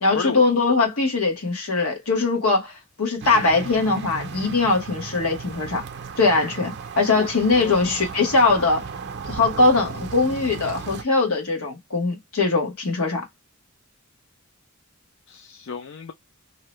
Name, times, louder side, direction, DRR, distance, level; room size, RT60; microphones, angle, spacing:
voice 1, 0.0-5.8 6.2-8.8 9.2-13.2, left 3 dB, 80° left, 1.1 m, -21 dB
sound 1, 3.2-11.0, right 5 dB, 50° right, 0.5 m, -35 dB
voice 2, 7.1-7.9 13.0-13.2 15.3-16.1, left 5 dB, 60° left, 0.4 m, -33 dB
2.7 x 2.1 x 2.9 m
head